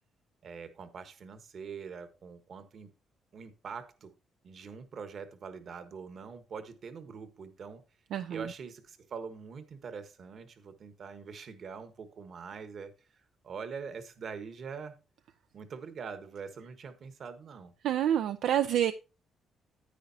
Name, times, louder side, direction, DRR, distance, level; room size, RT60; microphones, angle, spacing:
voice 1, 0.4-2.9 3.3-4.1 4.4-7.8 8.3-12.9 13.4-15.0 15.5-17.7, right 5 dB, 55° right, 10 dB, 1.4 m, -43 dB
voice 2, 8.1-8.5 17.8-18.9, right 10 dB, 80° right, 10 dB, 0.4 m, -28 dB
10.0 x 8.8 x 2.8 m, 0.31 s
cardioid pair, 90°, 0 cm